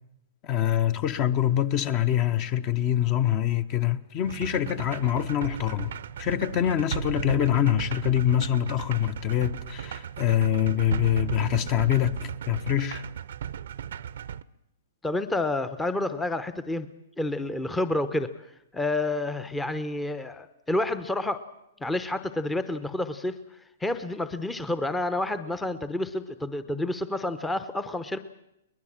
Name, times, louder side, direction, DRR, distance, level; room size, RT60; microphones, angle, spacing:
voice 1, 0.4-5.9 6.2-13.0, left 11 dB, 35° left, 1.0 m, -25 dB
sound 1, 4.2-14.4, right 9 dB, 70° right, 0.7 m, -36 dB
voice 2, 15.0-16.9 17.2-18.3 18.7-21.4 21.8-23.4 23.8-28.2, left 2 dB, 5° left, 0.8 m, -29 dB
22.5 x 20.0 x 7.5 m
hypercardioid pair, 145°, 0 cm